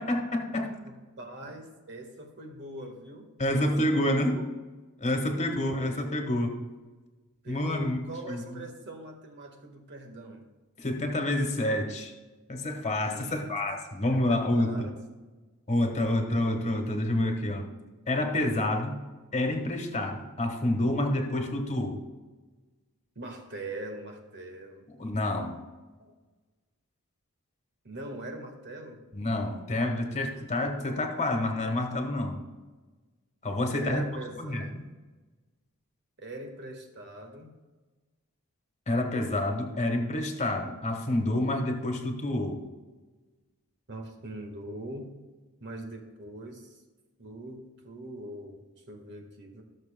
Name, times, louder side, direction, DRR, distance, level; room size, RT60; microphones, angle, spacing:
voice 1, 0.0-0.7 3.4-4.4 5.0-6.6 7.5-8.0 8.3-8.6 10.8-12.1 12.5-14.9 15.7-17.7 18.1-19.0 19.3-22.0 24.9-25.6 29.1-32.4 33.4-34.1 34.4-34.8 38.9-42.6, left 1 dB, 30° left, 4 dB, 1.4 m, -28 dB
voice 2, 0.8-3.7 4.0-4.5 5.3-5.8 7.4-10.5 13.0-13.5 14.3-14.9 16.0-16.3 23.1-24.8 26.0-26.1 27.8-29.0 33.7-34.7 36.2-37.5 43.9-45.1 45.6-46.8 47.2-49.6, right 1 dB, 50° right, 3 dB, 1.6 m, -42 dB
17.5 x 6.7 x 2.2 m, 1.3 s
head